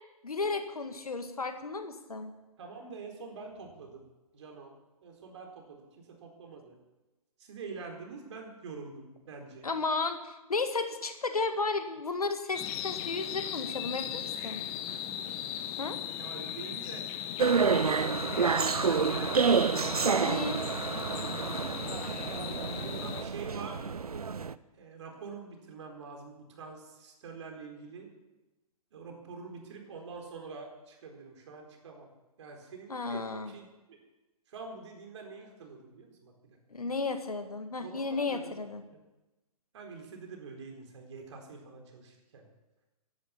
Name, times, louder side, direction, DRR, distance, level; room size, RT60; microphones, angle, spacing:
voice 1, 0.2-2.3 9.6-14.6 15.8-16.0 20.2-20.6 32.9-33.5 36.7-38.8, left 3 dB, 70° left, 8 dB, 1.9 m, -33 dB
voice 2, 2.6-4.1 4.3-4.8 5.0-6.7 7.4-9.7 16.1-17.0 18.6-19.5 19.8-20.9 22.8-23.8 24.8-28.1 28.9-32.1 32.4-34.0 34.5-36.3 37.8-38.6 39.7-42.4, right 4 dB, 50° right, 2 dB, 4.4 m, -45 dB
sound 1, 12.5-23.2, left 11 dB, 25° left, 0.9 m, -38 dB
sound 2, 17.4-24.5, right 5 dB, 75° right, 0.7 m, -28 dB
16.5 x 11.0 x 7.2 m, 1.1 s
figure-of-eight pair, 125°, 19 cm